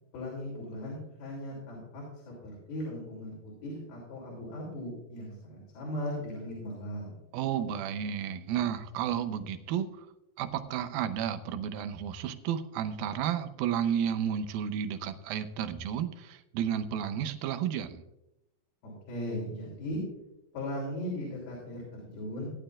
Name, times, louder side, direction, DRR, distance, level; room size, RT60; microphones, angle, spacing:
voice 1, 0.1-7.1 18.8-20.0 20.5-22.5, left 1 dB, 70° left, -4 dB, 5.0 m, -38 dB
voice 2, 7.3-10.1 10.4-18.0, right 9 dB, 75° right, 9 dB, 2.4 m, -32 dB
17.5 x 11.0 x 2.5 m, 0.90 s
omnidirectional pair, 4.5 m